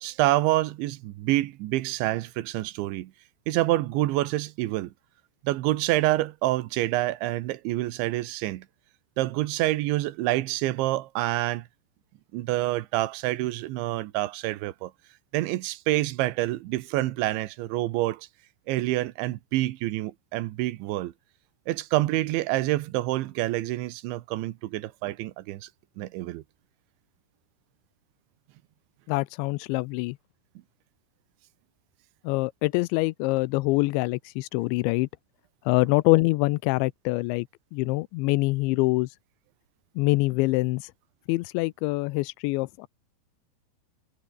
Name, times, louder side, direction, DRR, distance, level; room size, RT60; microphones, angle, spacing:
voice 1, 0.0-3.1 3.5-4.9 5.5-8.7 9.2-11.7 12.3-14.9 15.3-18.3 18.7-21.1 21.7-25.7 26.0-26.4, right 16 dB, 90° right, 3.5 m, -27 dB
voice 2, 29.1-30.2 32.2-35.1 35.7-37.5 37.7-39.2 40.0-40.9 41.3-42.9, left 22 dB, 90° left, 3.0 m, -25 dB
omnidirectional pair, 5.2 m